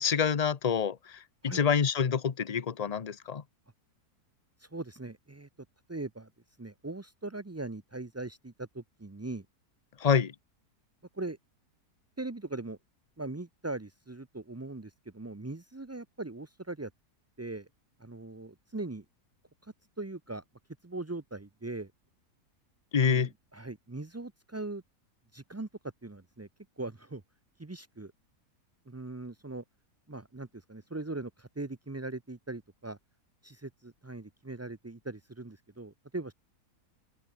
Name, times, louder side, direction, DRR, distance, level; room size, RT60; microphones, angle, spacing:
voice 1, 0.0-3.4 10.0-10.3 22.9-23.3, left 7 dB, 35° left, 0.6 m, -27 dB
voice 2, 4.6-5.5 5.9-6.3 6.6-9.5 11.1-11.4 12.2-12.8 13.2-16.9 17.4-17.7 18.0-19.0 19.6-20.4 20.8-21.9 23.0-24.8 25.3-25.7 26.0-26.5 26.8-27.2 27.6-28.1 28.9-29.6 30.1-33.0 33.4-36.3, right 2 dB, 25° right, 0.3 m, -40 dB
open air
omnidirectional pair, 1.7 m